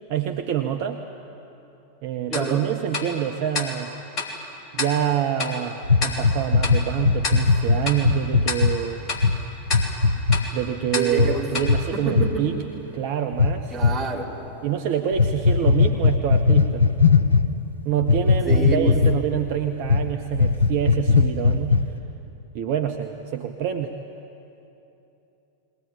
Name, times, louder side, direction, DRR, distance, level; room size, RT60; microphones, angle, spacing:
voice 1, 0.1-1.0 2.0-3.9 4.7-9.0 10.5-12.6 12.9-13.8 14.6-16.9 17.8-21.8 22.5-23.9, right 9 dB, 45° right, 5 dB, 1.0 m, -26 dB
Tick-tock, 2.3-12.8, left 3 dB, 35° left, 3.0 m, -33 dB
voice 2, 2.3-2.6 10.9-11.4 11.9-12.5 13.7-14.3 18.5-18.9, right 4 dB, 15° right, -5 dB, 4.5 m, -27 dB
sound 1, 5.8-8.7 9.2-9.4 9.7-10.4 11.1-11.3 11.6-11.8 12.1-12.3 13.3-14.0 15.1-17.5 18.0-19.4 19.8-20.0 20.3-22.0, left 4 dB, 85° left, 0.7 m, -18 dB
22.0 x 18.0 x 10.0 m, 3.0 s
figure-of-eight pair, 90°, 0 cm